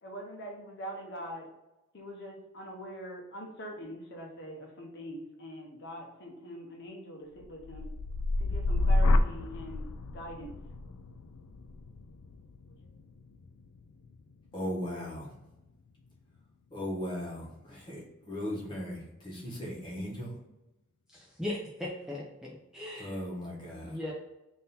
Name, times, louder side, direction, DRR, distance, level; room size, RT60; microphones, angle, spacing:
voice 1, 0.0-1.5 1.9-7.9 8.4-10.6, equal, 50° left, 0.7 m, -43 dB
sound 1, 7.4-15.4 15.9-16.4, left 2 dB, 90° left, 0.4 m, -31 dB
voice 2, 14.5-15.3 16.7-20.4 23.0-24.0, equal, 20° left, 1.2 m, -37 dB
voice 3, 21.1-23.2 23.8-24.1, left 1 dB, 5° right, 0.4 m, -38 dB
3.7 x 2.7 x 4.1 m
head